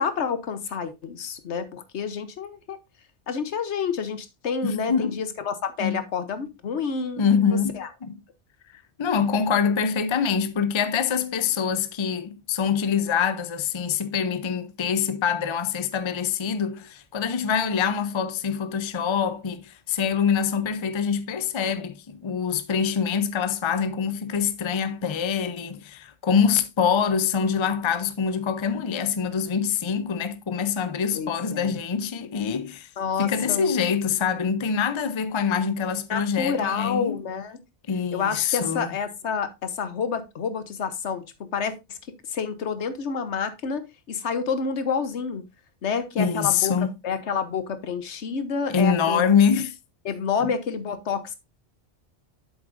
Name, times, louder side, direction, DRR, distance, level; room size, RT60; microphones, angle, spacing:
voice 1, 0.0-2.8 3.3-7.9 31.1-31.8 33.0-33.7 36.1-37.6 38.1-42.0 42.3-45.4 45.8-46.7 47.0-49.2 50.0-51.3, left 6 dB, 75° left, 1.2 m, -29 dB
voice 2, 4.6-5.2 5.8-6.0 7.2-8.2 9.0-32.9 33.2-37.2 37.9-38.9 46.2-46.9 48.7-49.7 50.4-50.5, left 7 dB, 35° left, 0.5 m, -25 dB
7.9 x 7.5 x 2.5 m
omnidirectional pair, 1.2 m